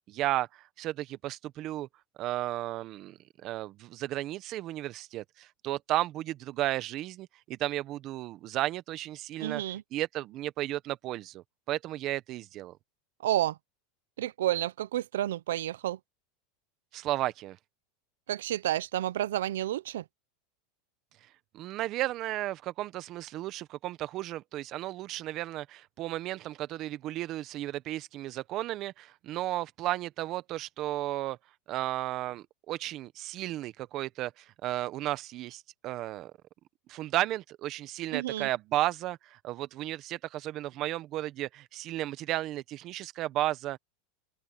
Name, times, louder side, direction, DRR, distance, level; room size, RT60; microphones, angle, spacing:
voice 1, 0.1-1.9 2.2-9.6 9.9-12.7 16.9-17.6 21.5-31.4 31.7-36.3 36.9-43.8, right 15 dB, 45° right, 1.2 m, -34 dB
voice 2, 9.4-9.8 13.2-13.6 14.2-16.0 18.3-20.0 38.1-38.5, right 13 dB, 85° right, 0.7 m, -30 dB
open air
supercardioid pair, 125°, 0 cm